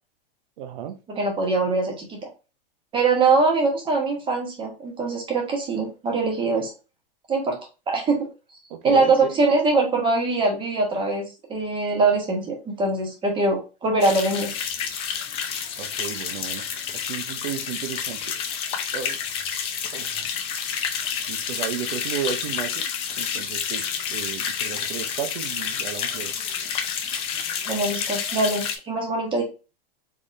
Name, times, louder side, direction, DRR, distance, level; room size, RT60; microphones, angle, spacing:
voice 1, 0.6-0.9 8.7-9.4 15.8-16.6 17.1-18.2 18.9-19.2 19.9-20.3 21.3-22.9 23.2-23.8 24.1-26.3, right 9 dB, 60° right, 8 dB, 0.8 m, -33 dB
voice 2, 1.1-2.2 2.9-6.7 7.3-7.6 7.9-8.3 8.8-14.6 27.7-29.4, right 3 dB, 15° right, 1 dB, 1.1 m, -23 dB
sound 1, 14.0-28.8, left 7 dB, 20° left, 0.4 m, -29 dB
3.7 x 3.5 x 2.6 m, 0.31 s
supercardioid pair, 150°, 30 cm